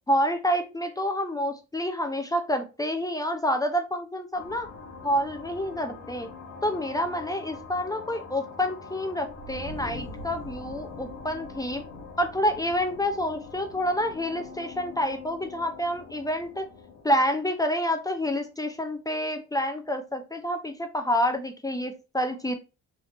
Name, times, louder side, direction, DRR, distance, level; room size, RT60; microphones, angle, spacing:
voice 1, 0.1-4.7 5.0-6.3 6.6-11.8 12.2-16.7 17.0-22.5, equal, 10° left, 5 dB, 0.5 m, -28 dB
sound 1, 4.3-18.5, left 3 dB, 85° left, 1.1 m, -43 dB
3.3 x 2.5 x 2.9 m, 0.29 s
cardioid pair, 90°, 30 cm